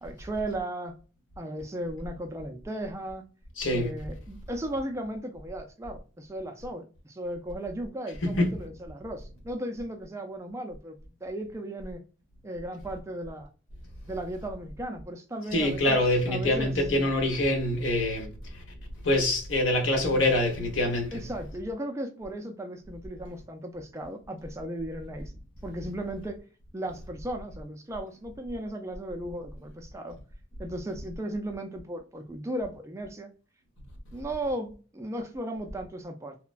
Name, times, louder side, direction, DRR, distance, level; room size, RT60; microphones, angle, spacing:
voice 1, 0.0-1.0 1.4-3.2 3.7-12.0 12.4-13.5 14.1-16.0 16.3-16.7 21.1-25.3 25.6-26.4 26.7-30.2 30.6-33.3 34.1-36.4, right 1 dB, 15° right, 0.3 m, -36 dB
voice 2, 3.6-3.9 8.2-8.5 15.5-18.3 19.0-21.2, left 1 dB, 80° left, 0.8 m, -25 dB
3.0 x 2.1 x 2.3 m
head